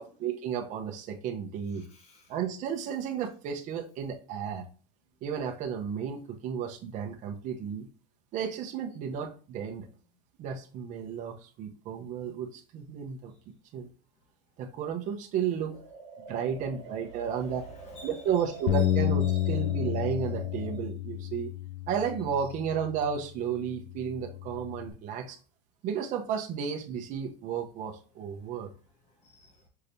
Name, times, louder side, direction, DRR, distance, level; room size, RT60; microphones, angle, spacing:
voice 1, 0.0-1.8 2.3-4.6 5.2-7.9 8.3-9.9 10.4-13.3 13.7-13.9 14.6-15.8 16.3-17.6 18.0-21.5 21.9-25.4 25.8-28.7, right 7 dB, 40° right, 0.9 m, -33 dB
voice 2, 1.7-2.3 16.4-16.8 17.2-18.2 18.7-18.9 19.2-19.6 29.2-29.5, right 1 dB, 30° left, 1.0 m, -51 dB
sound 1, 15.7-20.8, right 4 dB, 65° right, 1.2 m, -47 dB
Bass guitar, 18.7-23.1 23.7-24.9, left 12 dB, 85° left, 0.5 m, -31 dB
5.7 x 3.2 x 2.7 m
supercardioid pair, 140°, 21 cm